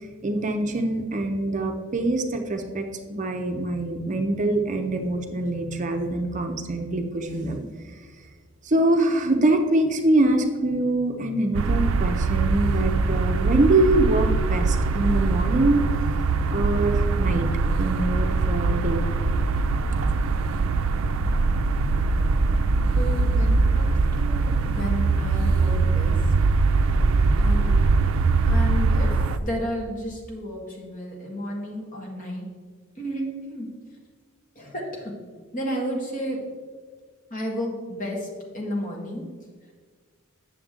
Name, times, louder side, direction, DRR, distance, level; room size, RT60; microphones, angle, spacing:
voice 1, 0.2-7.6 8.6-15.8 16.5-17.5 17.8-19.0, right 2 dB, 35° right, 4 dB, 0.6 m, -24 dB
sound 1, 11.5-29.4, right 3 dB, 85° right, 0.4 m, -22 dB
voice 2, 22.9-26.2 27.4-27.7 28.4-32.5 32.9-33.7 34.5-35.1 35.5-36.4 37.3-39.2, equal, 40° left, -1 dB, 1.6 m, -32 dB
8.5 x 7.0 x 3.7 m, 1.5 s
head